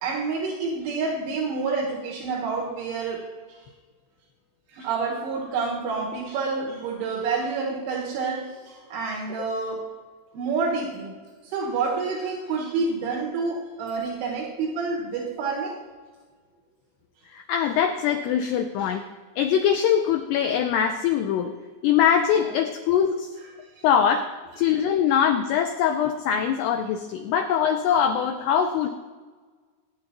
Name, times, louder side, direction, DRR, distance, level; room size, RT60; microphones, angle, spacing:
voice 1, 0.0-3.7 4.7-9.9 10.3-11.1 11.4-15.8 18.8-18.9 22.4-22.5 23.7-23.9 27.3-27.4, right 4 dB, 85° right, -3 dB, 4.0 m, -28 dB
voice 2, 17.3-19.0 19.4-21.5 21.8-23.3 23.8-28.9, left 8 dB, 85° left, 6 dB, 2.4 m, -22 dB
21.5 x 10.0 x 2.9 m, 1.4 s
omnidirectional pair, 5.5 m